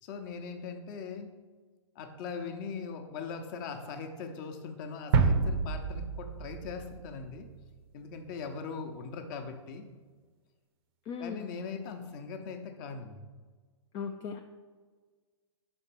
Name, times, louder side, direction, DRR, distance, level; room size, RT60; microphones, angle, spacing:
voice 1, 0.0-1.3 2.0-7.5 7.9-9.9 11.2-13.2, left 5 dB, 40° left, 6 dB, 0.9 m, -40 dB
sound 1, 5.1-7.6, right 5 dB, 50° right, 0.7 m, -28 dB
voice 2, 11.1-11.5 13.9-14.4, left 6 dB, 25° left, 4 dB, 0.4 m, -37 dB
5.8 x 4.3 x 5.9 m, 1.4 s
hypercardioid pair, 120°, 16 cm